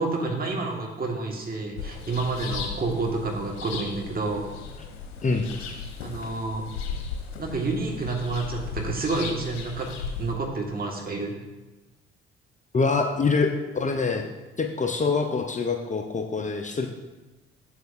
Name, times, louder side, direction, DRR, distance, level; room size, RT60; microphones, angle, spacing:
voice 1, 0.0-4.5 6.0-6.6 7.4-9.9 10.2-11.4, right 3 dB, 30° right, 1 dB, 1.6 m, -29 dB
sound 1, 1.8-10.3, left 5 dB, 65° left, 1.0 m, -36 dB
voice 2, 12.7-14.3 14.6-16.9, left 4 dB, 25° left, 3 dB, 0.7 m, -25 dB
7.9 x 6.7 x 2.6 m, 1.1 s
figure-of-eight pair, 45°, 30 cm